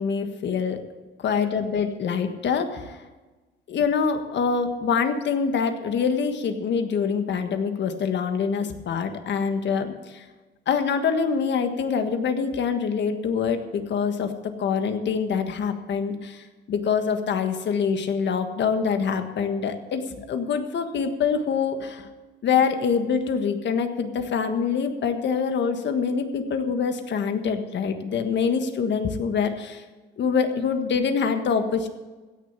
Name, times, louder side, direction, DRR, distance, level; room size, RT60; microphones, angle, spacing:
voice 1, 0.0-0.8 1.2-3.0 3.7-10.2 10.7-14.3 14.6-22.1 22.4-29.8 30.2-31.9, left 6 dB, 65° left, 8 dB, 1.5 m, -25 dB
16.5 x 6.6 x 8.3 m, 1.2 s
cardioid pair, 90°, 20 cm